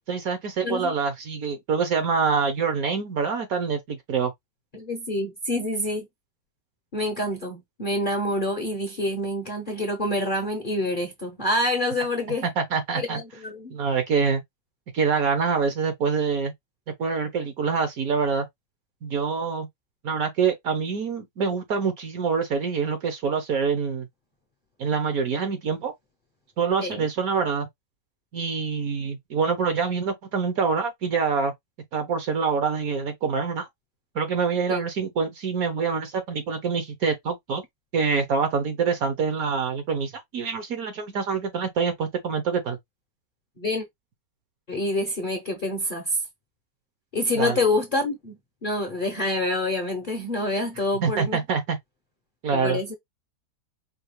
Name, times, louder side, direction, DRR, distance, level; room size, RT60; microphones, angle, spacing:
voice 1, 0.1-4.3 12.6-13.2 13.7-14.4 14.9-16.5 17.0-18.5 19.0-19.7 20.0-24.1 24.8-25.9 26.6-27.7 28.3-31.5 31.9-33.7 34.1-37.6 37.9-42.8 47.4-47.6 51.0-51.8 52.4-52.8, right 5 dB, 60° right, 1.2 m, -25 dB
voice 2, 4.7-6.1 6.9-12.4 12.9-13.7 26.8-27.1 34.7-34.8 43.6-43.9 44.7-46.2 47.1-51.4 52.5-52.9, left 1 dB, 40° left, 0.8 m, -27 dB
4.7 x 2.4 x 3.2 m
omnidirectional pair, 1.9 m